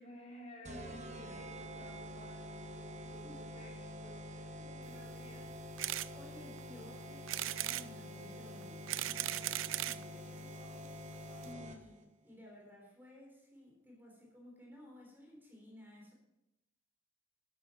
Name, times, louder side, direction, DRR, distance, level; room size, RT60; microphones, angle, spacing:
voice 1, 0.0-5.6 10.4-11.8, left 1 dB, 35° left, -3 dB, 4.0 m, -55 dB
sound 1, 0.6-12.0, equal, 35° right, 1.2 m, -47 dB
voice 2, 0.9-1.4 3.1-3.4 4.5-4.7 6.1-10.6 11.4-16.1, left 1 dB, 10° right, -1 dB, 3.6 m, -56 dB
sound 2, 5.8-6.1 6.6-6.7 7.3-7.9 8.6-10.0 10.8-10.9 11.1-11.2 11.4-11.5, right 14 dB, 85° right, 0.5 m, -37 dB
13.0 x 11.0 x 4.4 m, 0.89 s
head